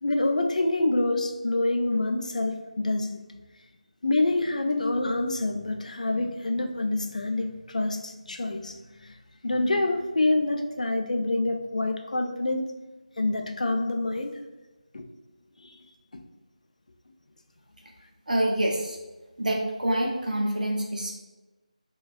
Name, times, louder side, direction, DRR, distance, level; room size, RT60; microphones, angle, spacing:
voice 1, 0.0-3.2 4.0-9.1 9.4-12.7 13.2-14.4 14.9-15.0 15.6-15.8, left 2 dB, 70° left, 5 dB, 0.3 m, -26 dB
voice 2, 18.3-19.0 19.4-21.2, right 1 dB, 80° right, -1 dB, 0.5 m, -26 dB
3.4 x 2.2 x 2.3 m, 1.2 s
figure-of-eight pair, 170°, 4 cm